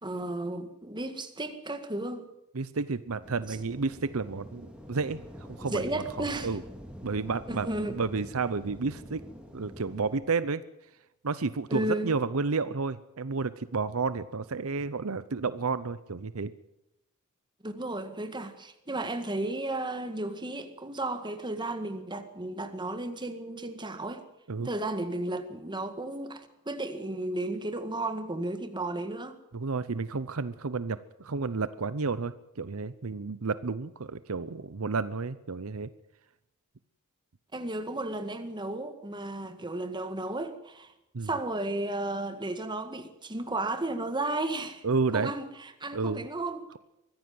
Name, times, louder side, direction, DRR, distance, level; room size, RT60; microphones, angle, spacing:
voice 1, 0.0-2.3 5.6-6.5 7.5-8.0 11.7-12.2 17.6-24.2 24.6-29.4 37.5-40.9 41.2-44.8 45.1-46.6, right 2 dB, 20° right, 1.9 m, -34 dB
voice 2, 2.5-5.2 5.5-6.6 7.0-9.2 9.5-10.6 11.2-16.5 24.5-24.7 29.5-35.9 41.1-41.3 44.8-45.3 45.9-46.3, right 4 dB, 70° right, 0.7 m, -31 dB
sound 1, 3.2-10.2, equal, 5° right, 3.8 m, -46 dB
23.5 x 15.5 x 7.8 m
head